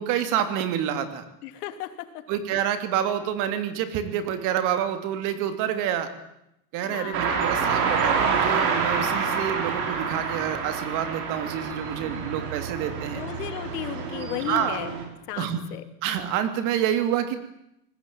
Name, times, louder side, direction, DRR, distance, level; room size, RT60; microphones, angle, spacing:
voice 1, 0.0-1.2 2.3-6.1 6.7-13.2 14.5-14.8 15.4-15.7 16.0-17.4, right 9 dB, 40° right, 9 dB, 3.0 m, -27 dB
voice 2, 1.4-1.9 6.8-7.2 13.1-14.9 15.3-15.8, left 11 dB, 80° left, 9 dB, 3.1 m, -34 dB
sound 1, 7.1-15.0, right 5 dB, 65° right, 6.7 m, -27 dB
25.5 x 20.0 x 8.9 m, 0.82 s
supercardioid pair, 170°, 46 cm